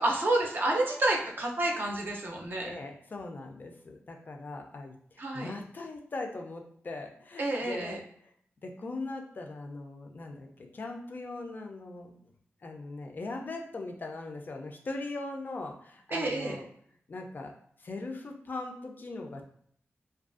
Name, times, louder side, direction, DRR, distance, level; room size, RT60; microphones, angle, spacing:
voice 1, 0.0-2.7 5.2-5.5 7.4-8.0 16.1-16.6, right 1 dB, 45° right, 0 dB, 0.5 m, -29 dB
voice 2, 2.6-8.3 8.6-12.1 12.6-16.6 17.1-17.5 17.8-19.5, left 2 dB, 45° left, 3 dB, 0.4 m, -40 dB
2.4 x 2.3 x 2.4 m, 0.64 s
wide cardioid pair, 125°, 4 cm